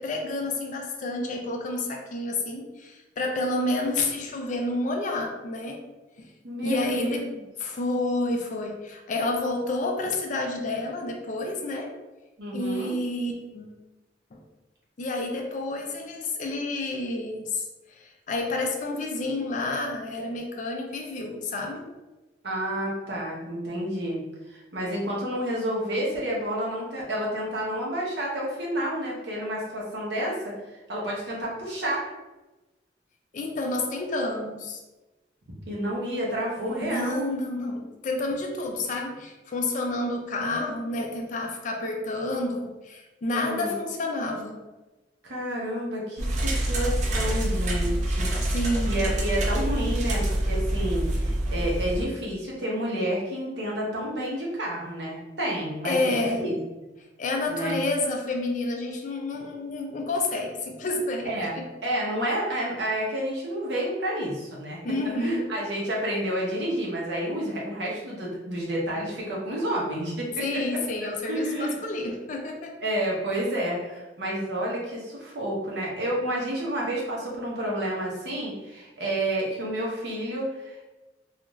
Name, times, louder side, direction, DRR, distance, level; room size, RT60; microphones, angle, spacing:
voice 1, 0.0-5.8 6.2-6.3 6.6-7.3 7.6-11.9 12.5-13.8 14.3-14.4 15.0-21.8 33.3-34.8 36.6-44.6 48.5-49.2 55.8-56.5 57.2-61.6 64.8-65.5 70.4-72.8, left 2 dB, 45° left, 2 dB, 0.4 m, -29 dB
voice 2, 6.4-7.3 12.4-12.9 22.4-32.1 35.7-37.3 43.3-43.8 45.2-48.3 48.9-56.6 57.5-57.8 61.2-61.5 61.8-64.8 65.2-70.6 71.3-71.7 72.8-80.9, right 1 dB, 70° right, -4 dB, 0.8 m, -30 dB
sound 1, 46.2-52.0, right 1 dB, 40° right, 0.4 m, -26 dB
2.4 x 2.3 x 3.0 m, 1.1 s
head